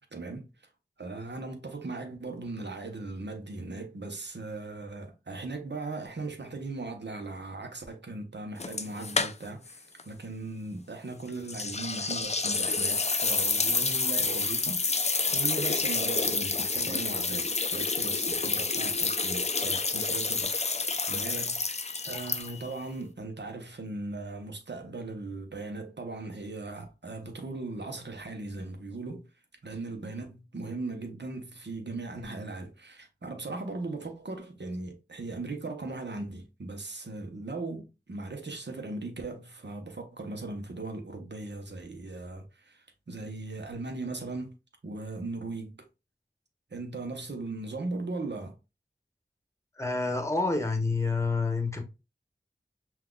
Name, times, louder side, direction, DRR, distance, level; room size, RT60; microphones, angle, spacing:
voice 1, 0.1-0.5 1.0-15.1 15.3-29.3 29.6-44.5 44.8-45.8 46.7-48.6, right 3 dB, 65° right, 0.8 m, -38 dB
sound 1, 8.6-9.7 10.0-10.1 11.5-22.8, left 3 dB, 35° left, 0.4 m, -29 dB
voice 2, 49.7-51.8, left 3 dB, 15° left, 0.9 m, -28 dB
5.7 x 2.4 x 2.2 m
wide cardioid pair, 40°, 19 cm